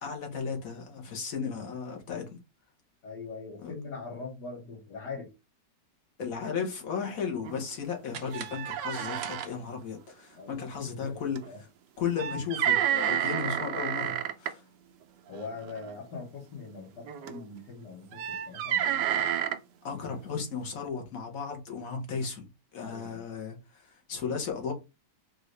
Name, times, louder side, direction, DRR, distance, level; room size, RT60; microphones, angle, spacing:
voice 1, 0.0-2.4 3.6-3.7 6.2-11.7 12.0-14.6 19.8-24.7, left 6 dB, 55° left, 1.4 m, -35 dB
voice 2, 3.0-5.3 10.3-11.6 15.3-19.4 19.9-20.0 22.8-23.2, left 4 dB, 75° left, 2.1 m, -42 dB
sound 1, 7.4-7.6 7.9-8.0 8.3-9.5 11.4-11.5 12.2-14.5 15.6-15.9 17.1-17.4 18.1-19.6, right 10 dB, 80° right, 1.2 m, -30 dB
sound 2, 8.1-10.0, right 7 dB, 65° right, 0.8 m, -46 dB
4.6 x 2.7 x 3.1 m
omnidirectional pair, 1.9 m